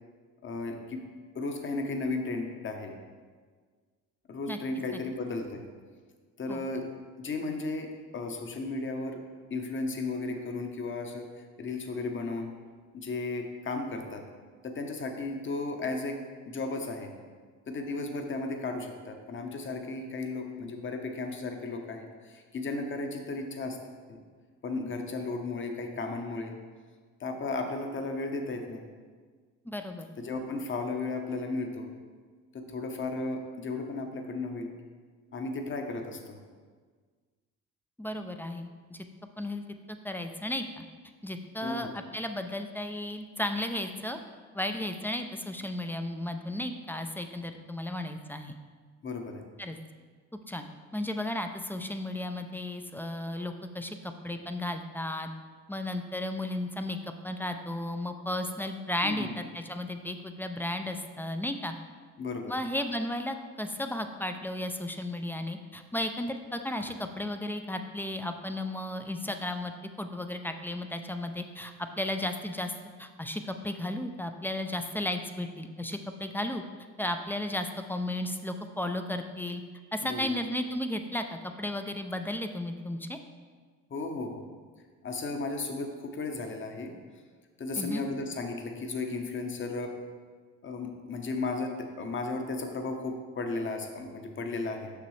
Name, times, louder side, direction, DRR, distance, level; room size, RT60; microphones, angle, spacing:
voice 1, 0.4-1.0 1.3-3.0 4.3-5.6 6.4-6.9 7.2-9.2 9.5-11.3 11.6-12.5 12.9-14.2 14.6-16.2 16.5-17.1 17.7-23.8 24.1-24.2 24.6-26.5 27.2-28.8 30.2-31.9 32.5-34.7 35.3-36.4 41.6-42.0 49.0-49.5 59.0-59.3 62.2-62.5 80.0-80.4 83.9-84.4 85.0-86.9 87.6-89.9 90.6-94.9, left 3 dB, 35° left, 5 dB, 0.9 m, -34 dB
voice 2, 29.7-30.1 38.0-39.1 39.4-39.6 40.0-40.8 41.2-44.2 44.5-48.5 49.6-49.8 50.5-50.6 50.9-55.3 55.7-57.0 57.2-61.7 62.5-69.7 70.0-76.6 77.0-79.6 79.9-83.2 87.8-88.1, left 1 dB, 5° left, 7 dB, 0.3 m, -34 dB
6.7 x 6.0 x 3.2 m, 1.6 s
cardioid pair, 90°, 34 cm